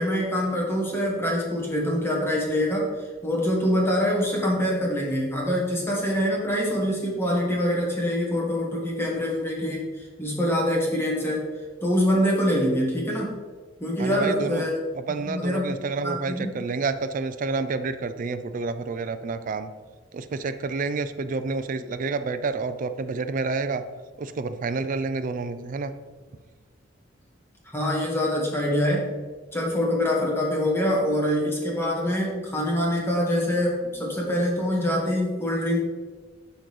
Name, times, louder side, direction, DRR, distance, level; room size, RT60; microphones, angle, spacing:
voice 1, 0.0-11.5 11.8-13.3 13.8-14.7 15.2-15.8 16.0-16.6 27.6-29.1 29.5-35.8, equal, 15° left, -3 dB, 1.5 m, -25 dB
voice 2, 14.0-14.7 14.9-19.7 20.1-23.8 24.2-25.9, right 4 dB, 45° right, 11 dB, 0.4 m, -29 dB
11.0 x 3.9 x 3.2 m, 1.4 s
head